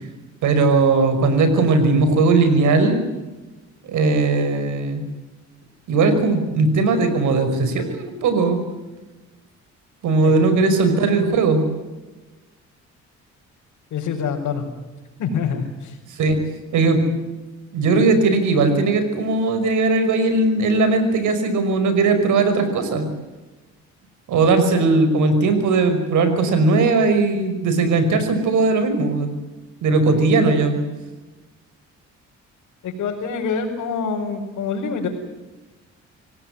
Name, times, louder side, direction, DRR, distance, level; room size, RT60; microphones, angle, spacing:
voice 1, 0.4-3.0 3.8-5.0 5.9-8.6 10.0-11.6 16.2-16.4 16.7-17.0 17.7-23.1 24.3-29.3 29.8-30.8, right 3 dB, 75° right, 9 dB, 5.6 m, -18 dB
voice 2, 13.9-14.7 15.2-16.0 32.8-35.1, left 5 dB, 75° left, -2 dB, 4.9 m, -25 dB
26.5 x 18.0 x 9.8 m, 1.2 s
cardioid pair, 90°, 30 cm